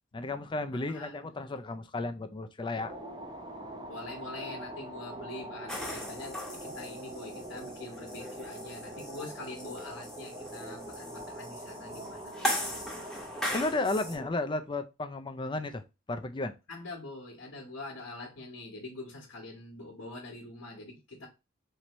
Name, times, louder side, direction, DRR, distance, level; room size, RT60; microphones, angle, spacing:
voice 1, 0.1-2.9 13.5-15.8 16.1-16.5, left 2 dB, 25° left, 0.4 m, -33 dB
voice 2, 0.9-1.3 3.9-12.9 16.7-21.3, left 2 dB, 80° left, 1.3 m, -44 dB
sound 1, 2.7-14.3, right 1 dB, 25° right, 0.7 m, -43 dB
sound 2, 5.7-14.1, left 1 dB, 5° left, 0.9 m, -39 dB
4.5 x 2.8 x 3.0 m
head